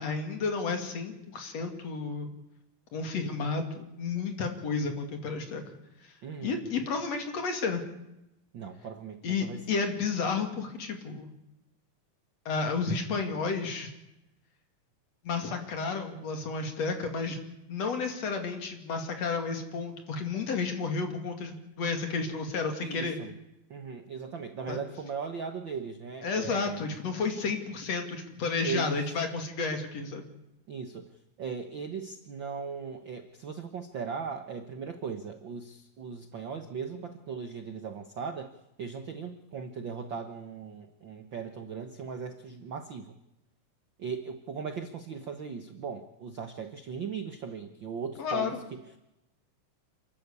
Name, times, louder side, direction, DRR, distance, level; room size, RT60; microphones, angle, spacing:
voice 1, 0.0-2.3 2.9-5.6 6.4-7.8 9.2-11.3 12.4-13.9 15.2-17.4 17.7-23.2 24.7-24.8 26.2-30.3 48.2-48.6, left 4 dB, 55° left, 5 dB, 3.4 m, -32 dB
voice 2, 6.2-6.6 8.5-9.6 22.8-23.3 23.7-26.8 28.6-29.1 30.7-31.1 31.4-38.5 38.8-43.2 44.0-49.0, right 6 dB, 65° right, 7 dB, 1.2 m, -38 dB
28.5 x 12.5 x 8.3 m, 0.89 s
omnidirectional pair, 3.8 m